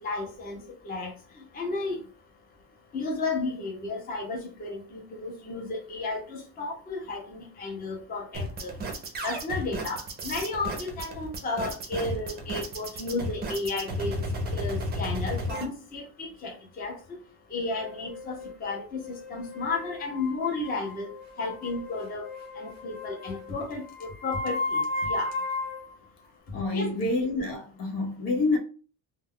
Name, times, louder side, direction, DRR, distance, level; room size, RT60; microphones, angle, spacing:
voice 1, 0.0-1.1 1.4-2.0 2.9-8.7 9.2-14.1 14.5-17.0 17.5-21.1 21.4-22.3 22.6-25.5 26.7-26.9, left 3 dB, 20° left, 0.6 m, -33 dB
sound 1, 8.3-15.6, equal, 25° right, 0.5 m, -33 dB
sound 2, 17.8-25.9, left 2 dB, 45° left, 1.0 m, -35 dB
voice 2, 26.5-28.6, left 2 dB, 85° left, 0.9 m, -27 dB
2.3 x 2.2 x 3.5 m
cardioid pair, 180°, 40 cm